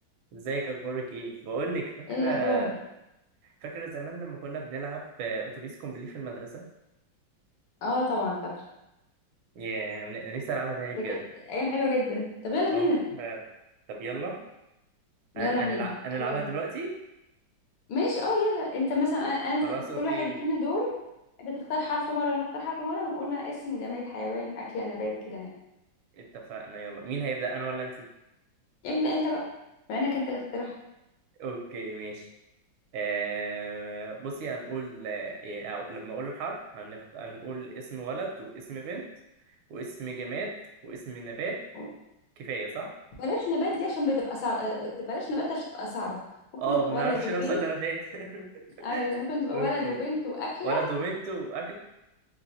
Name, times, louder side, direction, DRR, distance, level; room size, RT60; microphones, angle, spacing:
voice 1, 0.3-2.7 3.6-6.7 9.5-11.2 12.7-13.4 13.9-14.4 15.4-16.9 19.6-20.4 26.2-28.1 31.4-32.3 32.9-39.1 39.7-40.5 40.8-41.6 42.4-42.9 46.6-49.2 49.5-50.0 50.6-51.7, right 4 dB, 85° right, 1 dB, 1.5 m, -34 dB
voice 2, 2.1-2.7 7.8-8.6 11.0-11.2 11.5-13.0 15.3-15.9 16.2-16.5 17.9-21.0 21.4-25.5 28.8-29.4 29.9-30.7 41.7-41.9 43.2-46.2 46.7-47.6 48.8-50.8, left 2 dB, 80° left, -2 dB, 1.6 m, -29 dB
4.0 x 3.0 x 2.7 m, 0.90 s
omnidirectional pair, 2.2 m